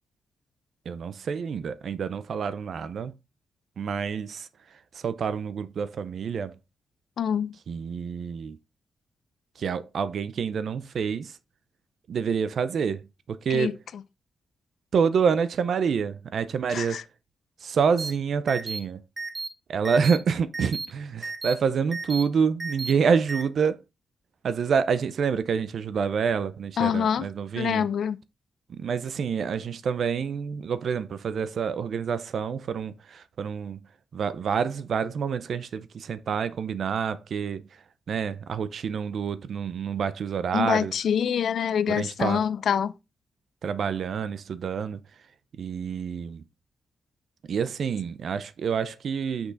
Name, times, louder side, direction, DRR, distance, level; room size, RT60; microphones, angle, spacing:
voice 1, 0.9-3.1 3.8-4.5 4.9-6.5 7.7-8.6 9.6-11.3 12.1-13.8 14.9-17.0 17.6-19.0 19.7-23.8 24.4-27.9 28.7-33.8 34.1-37.6 38.1-40.9 41.9-42.4 43.6-45.0 45.6-46.4 47.5-49.5, right 6 dB, 60° right, 0.5 m, -27 dB
voice 2, 7.2-7.6 13.5-14.0 16.7-17.0 26.8-27.3 27.5-28.2 40.5-42.9, left 8 dB, 65° left, 0.5 m, -26 dB
sound 1, 18.0-18.1 18.5-18.8 19.2-19.5 19.8-20.2 20.5-20.9 21.2-21.5 21.9-22.2 22.6-22.9 23.3-23.4, right 4 dB, 30° right, 1.3 m, -33 dB
6.2 x 5.9 x 3.9 m
wide cardioid pair, 145°, 0 cm